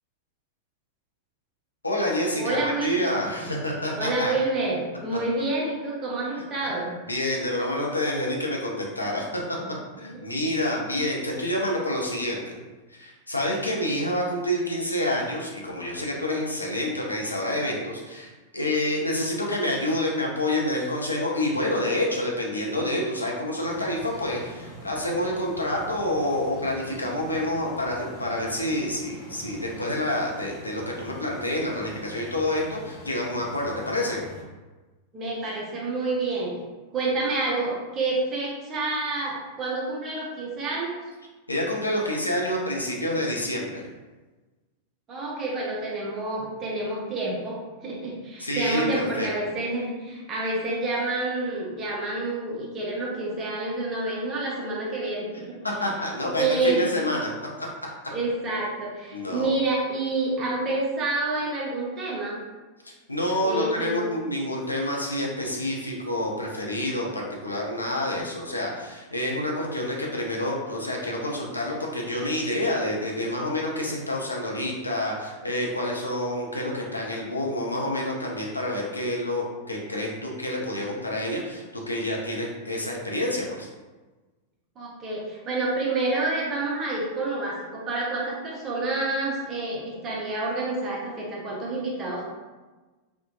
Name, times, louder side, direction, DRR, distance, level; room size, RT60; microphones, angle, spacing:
voice 1, 1.8-4.4 6.6-6.7 7.1-9.6 10.0-12.4 12.9-34.2 41.5-43.9 48.4-49.3 55.8-57.3 57.6-57.7 59.1-59.5 62.8-83.7, left 1 dB, 80° left, -2 dB, 0.4 m, -28 dB
voice 2, 2.3-3.5 4.0-6.9 9.6-9.7 10.0-10.2 35.1-36.5 36.9-41.0 45.1-55.5 56.2-56.9 58.1-62.4 63.4-64.1 84.8-92.3, right 2 dB, 30° right, -4 dB, 0.7 m, -28 dB
sound 1, 23.6-34.4, equal, 35° left, 0.6 m, -44 dB
2.7 x 2.1 x 2.4 m, 1.2 s
figure-of-eight pair, 90°, 0 cm